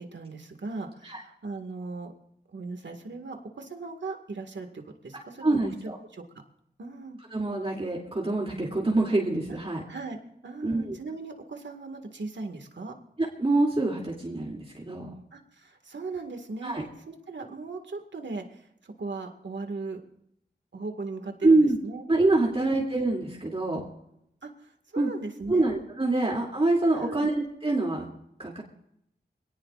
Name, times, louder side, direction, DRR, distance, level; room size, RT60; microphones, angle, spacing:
voice 1, 0.0-2.1 2.5-4.7 5.0-5.7 6.1-6.2 6.8-7.2 9.9-10.2 10.4-12.9 15.3-20.0 20.7-22.0 22.5-22.8 24.4-25.7 26.9-27.3, right 3 dB, 90° right, 5 dB, 1.9 m, -38 dB
voice 2, 5.4-6.0 7.3-9.8 10.6-11.0 13.2-15.1 16.6-16.8 21.4-21.8 22.1-23.9 25.0-25.1 25.5-28.1 28.4-28.6, right 2 dB, 30° right, -3 dB, 2.8 m, -25 dB
25.5 x 18.0 x 2.5 m, 0.76 s
wide cardioid pair, 90°, 18 cm